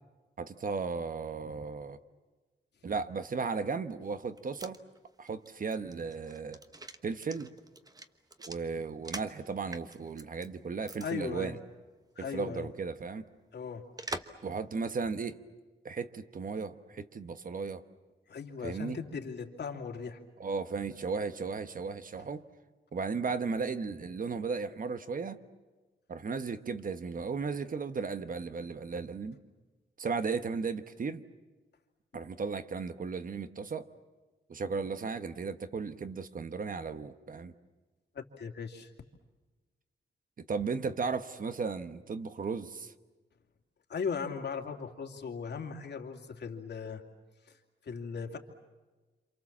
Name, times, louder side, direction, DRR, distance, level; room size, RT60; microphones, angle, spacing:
voice 1, 0.4-2.0 2.8-4.8 5.2-6.6 7.0-7.5 8.5-11.6 12.2-13.2 14.4-15.4 15.8-17.8 18.6-19.0 20.4-22.4 22.9-25.4 26.1-29.4 30.0-31.2 32.1-33.9 34.5-37.5 40.5-42.9, right 5 dB, 50° right, 10 dB, 1.2 m, -35 dB
sound 1, 4.2-9.4 9.7-10.5 10.8-11.1 11.3-11.4 14.0-14.5 14.8-14.9, right 2 dB, 20° right, 1.1 m, -44 dB
voice 2, 11.0-11.6 12.2-12.7 13.5-13.8 18.3-20.2 38.1-38.9 43.9-47.0 47.8-48.4, left 5 dB, 70° left, 3 dB, 2.7 m, -38 dB
28.0 x 27.5 x 7.4 m, 1.2 s
wide cardioid pair, 145°, 18 cm